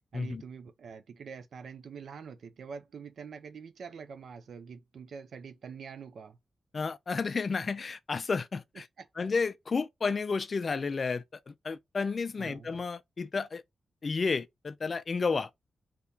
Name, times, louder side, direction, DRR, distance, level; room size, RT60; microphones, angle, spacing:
voice 1, 0.1-6.4 9.0-9.1 12.4-12.7, right 6 dB, 65° right, 0.4 m, -45 dB
voice 2, 6.7-8.8 9.2-13.6 14.0-15.5, left 4 dB, 35° left, 0.3 m, -32 dB
3.5 x 2.9 x 2.6 m
wide cardioid pair, 150°, 0 cm